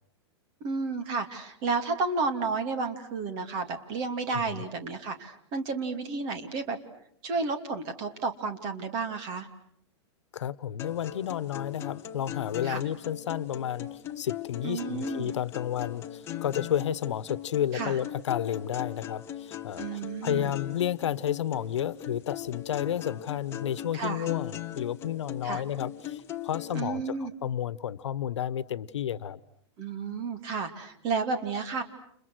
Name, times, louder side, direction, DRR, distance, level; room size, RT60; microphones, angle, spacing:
voice 1, 0.6-6.8 7.2-9.5 12.6-12.8 14.6-15.3 17.7-18.0 19.8-20.5 23.9-24.2 25.4-25.6 26.7-27.3 29.8-31.8, right 4 dB, 30° right, 8 dB, 2.7 m, -32 dB
voice 2, 10.3-29.4, left 10 dB, 85° left, 17 dB, 1.2 m, -31 dB
sound 1, 10.8-26.8, left 11 dB, 15° left, 1.1 m, -39 dB
30.0 x 29.5 x 6.3 m, 0.66 s
supercardioid pair, 170°, 15 cm